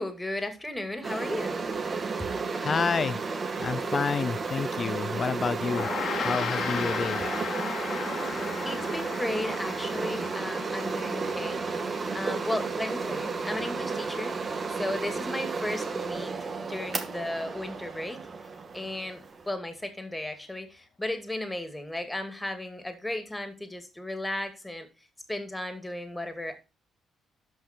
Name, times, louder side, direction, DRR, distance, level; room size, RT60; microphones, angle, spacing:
voice 1, 0.0-1.6 8.6-11.6 12.1-14.4 14.7-18.3 18.7-24.9 25.3-26.6, left 1 dB, 10° left, 2.5 m, -35 dB
sound 1, 1.0-19.5, right 4 dB, 35° right, 2.0 m, -32 dB
voice 2, 2.6-3.2 3.6-5.9 6.2-7.2, left 5 dB, 40° left, 0.6 m, -29 dB
Gong, 5.6-15.2, left 7 dB, 65° left, 2.0 m, -37 dB
12.5 x 5.5 x 4.5 m
cardioid pair, 90°, 0 cm